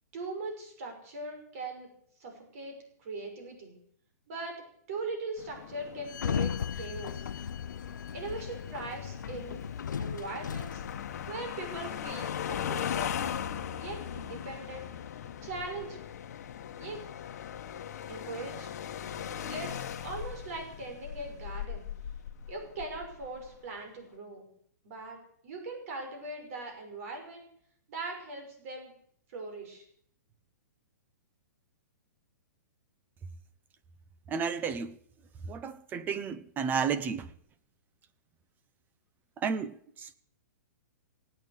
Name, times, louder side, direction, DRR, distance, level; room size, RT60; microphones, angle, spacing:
voice 1, 0.1-1.9 2.2-3.8 4.3-7.3 8.1-9.6 10.0-10.8 11.3-13.1 13.8-14.9 15.4-16.0 16.8-17.0 18.1-18.7 19.5-21.9 22.5-24.5 24.8-25.2 25.4-27.5 27.9-28.9 29.3-29.9, right 3 dB, 50° right, 5.8 m, -40 dB
sound 1, 5.4-23.5, left 9 dB, 65° left, 1.2 m, -39 dB
Sliding door, 6.1-11.3, left 8 dB, 90° left, 0.6 m, -36 dB
voice 2, 34.3-34.9 35.4-37.3 39.4-40.1, right 6 dB, 20° right, 0.9 m, -32 dB
18.5 x 9.0 x 8.2 m
hypercardioid pair, 145°, 10 cm